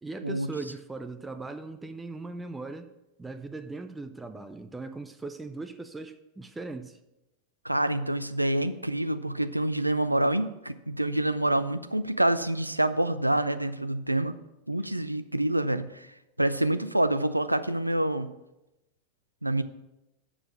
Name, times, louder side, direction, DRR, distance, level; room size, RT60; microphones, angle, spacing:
voice 1, 0.0-2.9 3.2-7.0, right 3 dB, 10° right, 9 dB, 0.4 m, -39 dB
voice 2, 7.6-14.3 14.7-16.1 16.4-18.3 19.4-19.6, right 1 dB, 85° right, 12 dB, 0.4 m, -27 dB
6.8 x 6.1 x 6.0 m, 0.93 s
figure-of-eight pair, 90°, 0 cm